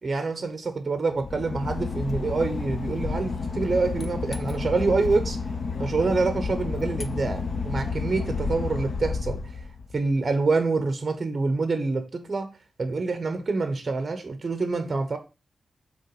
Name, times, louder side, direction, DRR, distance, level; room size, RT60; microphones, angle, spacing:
voice 1, 0.0-5.4 5.8-9.4 9.9-12.5 12.8-15.2, right 3 dB, 35° right, 1.0 m, -26 dB
Boat Water vehicle / Engine, 1.1-10.1, left 4 dB, 50° left, 0.6 m, -31 dB
5.5 x 4.0 x 4.9 m
wide cardioid pair, 130°, 0 cm